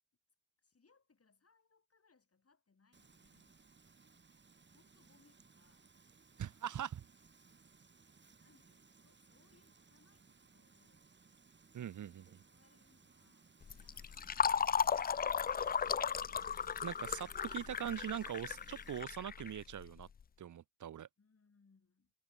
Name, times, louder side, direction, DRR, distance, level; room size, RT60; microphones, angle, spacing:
voice 1, 0.6-3.6 4.7-5.9 6.9-7.1 7.7-7.9 8.4-11.1 12.4-16.6 21.2-22.1, left 4 dB, 50° left, 7.2 m, -73 dB
Frying (food), 2.9-19.0, right 4 dB, 35° right, 1.5 m, -65 dB
voice 2, 6.4-7.0 11.7-12.4 15.9-16.0 16.8-20.1 20.4-21.1, right 9 dB, 70° right, 0.8 m, -42 dB
Fill (with liquid), 13.6-20.0, left 7 dB, 30° left, 0.4 m, -36 dB
cardioid pair, 55°, 31 cm